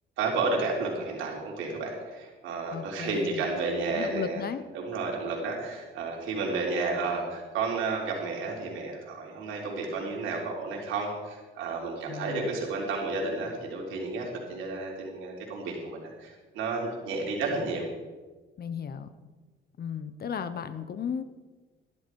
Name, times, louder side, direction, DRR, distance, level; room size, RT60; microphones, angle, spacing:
voice 1, 0.2-4.4 4.7-17.8, right 3 dB, 90° right, -1 dB, 3.7 m, -32 dB
voice 2, 2.7-3.5 3.9-4.6 12.1-12.5 18.6-19.1 19.8-21.2, left 7 dB, 50° left, 12 dB, 1.0 m, -35 dB
13.5 x 12.0 x 4.8 m, 1.3 s
cardioid pair, 90°, 20 cm